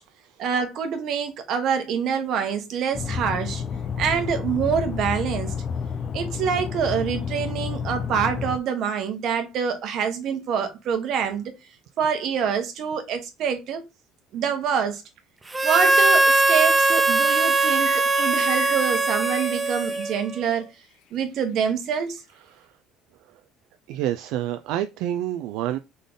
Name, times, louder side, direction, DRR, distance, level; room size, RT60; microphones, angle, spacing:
voice 1, 0.4-3.6 4.0-5.5 6.1-11.5 12.0-13.8 14.3-15.0 15.6-20.7 21.1-22.2, right 7 dB, 60° right, 1.1 m, -26 dB
sound 1, 2.9-8.6, left 6 dB, 40° left, 0.4 m, -30 dB
Harmonica, 15.5-20.4, right 2 dB, 15° right, 0.5 m, -20 dB
sound 2, 17.3-20.6 20.9-21.0 21.4-21.5, left 8 dB, 80° left, 1.0 m, -40 dB
voice 2, 23.9-25.8, right 12 dB, 80° right, 0.3 m, -28 dB
3.8 x 3.7 x 3.5 m
cardioid pair, 125°, 0 cm